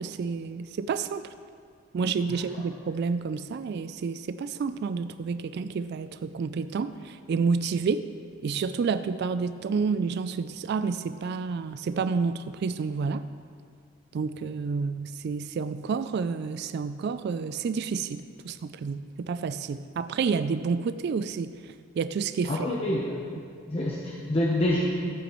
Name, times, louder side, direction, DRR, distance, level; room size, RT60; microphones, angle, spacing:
voice 1, 0.0-1.3 1.9-8.1 8.4-13.3 14.1-21.5 22.0-22.7, right 5 dB, 55° right, 12 dB, 0.3 m, -29 dB
voice 2, 22.5-23.2 23.7-24.8, left 1 dB, 30° left, -3 dB, 0.9 m, -27 dB
14.5 x 9.1 x 3.1 m, 2.1 s
head